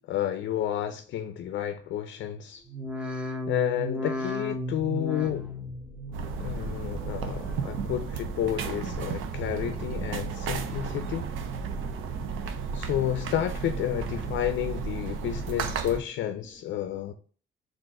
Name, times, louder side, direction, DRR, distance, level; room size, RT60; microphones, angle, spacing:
voice 1, 0.1-2.6 3.5-5.5 6.4-11.3 12.7-17.1, left 11 dB, 70° left, 0.4 m, -31 dB
sound 1, 2.7-8.0 8.3-8.9 9.4-10.1 10.5-11.2 11.6-12.2 12.7-13.3 13.8-13.9, left 1 dB, 5° right, 0.7 m, -37 dB
sound 2, 6.1-16.0, right 5 dB, 85° right, 0.6 m, -33 dB
voice 2, 11.7-12.9 16.8-16.9, right 1 dB, 25° left, 1.4 m, -56 dB
3.9 x 2.5 x 4.7 m
cardioid pair, 90°, 20 cm